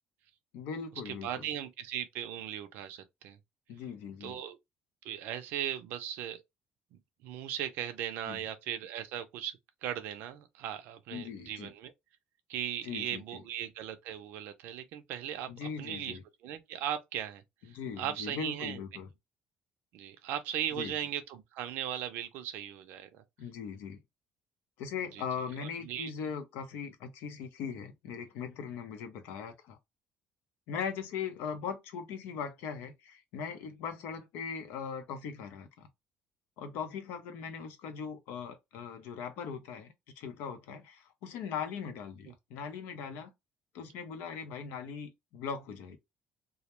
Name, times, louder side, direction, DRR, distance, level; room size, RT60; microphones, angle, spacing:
voice 1, 0.5-1.5 3.7-4.4 8.3-8.4 11.1-11.7 12.8-13.4 15.5-16.2 17.7-19.1 20.7-20.9 23.4-24.0 24.8-29.8 30.7-35.9 36.6-43.3 43.7-46.0, left 6 dB, 85° left, 0.6 m, -40 dB
voice 2, 1.1-3.4 4.2-4.6 5.0-6.4 7.2-11.9 12.5-16.2 16.4-17.4 17.7-18.8 19.9-23.2 25.2-25.3 25.6-26.1, right 10 dB, 75° right, 0.4 m, -38 dB
2.3 x 2.1 x 2.9 m
cardioid pair, 135°, 3 cm